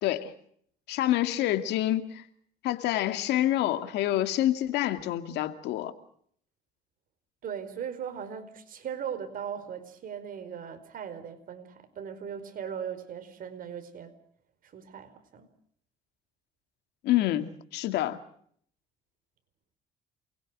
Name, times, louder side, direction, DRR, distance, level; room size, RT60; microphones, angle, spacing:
voice 1, 0.0-0.3 0.9-2.2 2.6-5.9 17.0-18.2, left 13 dB, 85° left, 2.4 m, -27 dB
voice 2, 7.4-14.1 14.7-15.5, right 8 dB, 55° right, 4.8 m, -38 dB
28.5 x 22.0 x 6.3 m
cardioid pair, 110°, 17 cm